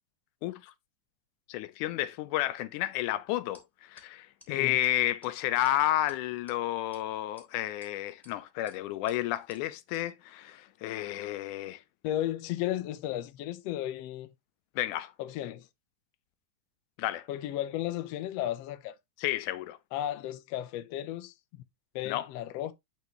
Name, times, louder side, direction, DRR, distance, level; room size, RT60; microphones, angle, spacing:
voice 1, 0.4-0.7 1.5-11.8 14.8-15.1 17.0-17.3 19.2-19.8 22.1-22.3, left 14 dB, 85° left, 2.1 m, -31 dB
sound 1, 3.5-3.6 4.0-4.1 4.4-4.5 4.8-4.9 5.2-5.3 5.6-5.7 6.1-6.5 6.9-7.0 7.4-7.9 8.2-8.3 8.7-8.8 9.1-9.2 9.5-9.6 9.9-10.0, equal, ahead, 2.2 m, -56 dB
voice 2, 12.0-14.3 15.2-15.7 17.3-18.9 19.9-21.6 21.9-22.7, left 12 dB, 70° left, 1.7 m, -34 dB
9.5 x 4.6 x 3.0 m
omnidirectional pair, 3.5 m